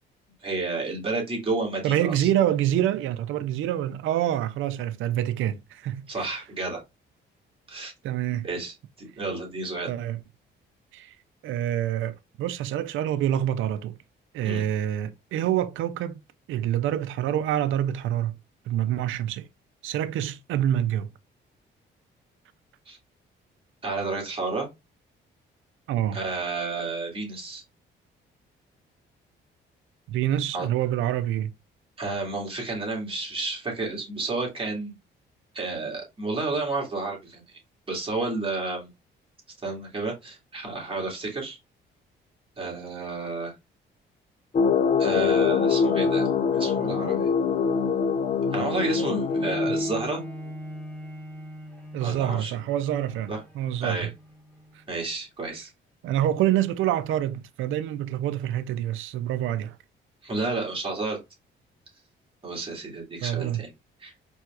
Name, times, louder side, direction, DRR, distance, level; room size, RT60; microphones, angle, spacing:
voice 1, 0.4-2.3 6.1-6.8 7.7-7.9 8.4-9.9 14.4-14.6 22.9-23.0 23.8-24.7 26.1-27.6 30.5-30.7 32.0-34.9 35.5-37.6 37.9-38.9 39.6-41.6 42.6-43.5 45.0-47.3 48.5-50.2 52.0-52.6 53.3-53.4 53.8-54.1 54.9-55.7 60.2-61.2 62.4-63.7 64.0-64.1, right 3 dB, 25° right, 2.3 m, -31 dB
voice 2, 1.8-6.3 8.0-8.5 9.9-10.2 10.9-11.1 11.4-14.0 14.3-16.2 16.5-18.4 18.7-19.5 19.8-21.1 25.9-26.2 30.1-31.5 51.9-54.1 54.7-54.8 56.0-59.8 63.2-63.6, right 11 dB, 80° right, 0.5 m, -26 dB
sound 1, 44.5-50.3, left 6 dB, 40° left, 0.6 m, -24 dB
Bowed string instrument, 49.3-54.9 55.6-55.7, equal, 10° left, 1.5 m, -42 dB
4.5 x 3.5 x 2.4 m
cardioid pair, 90°, 20 cm